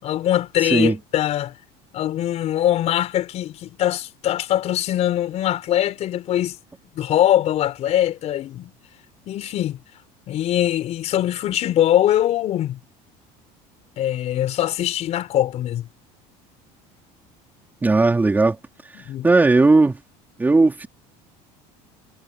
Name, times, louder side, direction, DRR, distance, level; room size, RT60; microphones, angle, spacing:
voice 1, 0.0-1.5 1.9-6.6 7.0-8.7 9.3-9.8 10.3-12.8 14.0-15.9 19.0-19.3, left 12 dB, 45° left, 5.4 m, -22 dB
voice 2, 0.6-1.0 17.8-18.6 19.2-20.0 20.4-20.9, right 3 dB, 10° right, 3.3 m, -16 dB
cardioid pair, 145°, 16 cm